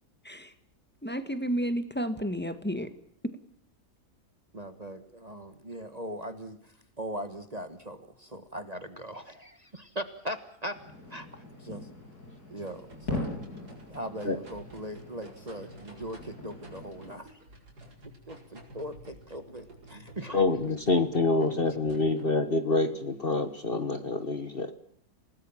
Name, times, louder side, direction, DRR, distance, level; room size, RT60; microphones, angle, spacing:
voice 1, 1.0-2.9, equal, 5° left, 10 dB, 1.6 m, -31 dB
voice 2, 4.5-10.8 11.1-11.8 12.5-13.3 13.9-17.4 18.3-20.4, equal, 25° right, 10 dB, 1.5 m, -40 dB
sound 1, 10.7-17.2, left 2 dB, 80° left, 7.1 m, -41 dB
sound 2, 12.6-22.4, right 1 dB, 90° right, 5.4 m, -51 dB
voice 3, 20.3-24.7, left 3 dB, 40° left, 10 dB, 1.5 m, -26 dB
28.0 x 18.5 x 7.3 m, 0.66 s
omnidirectional pair, 1.7 m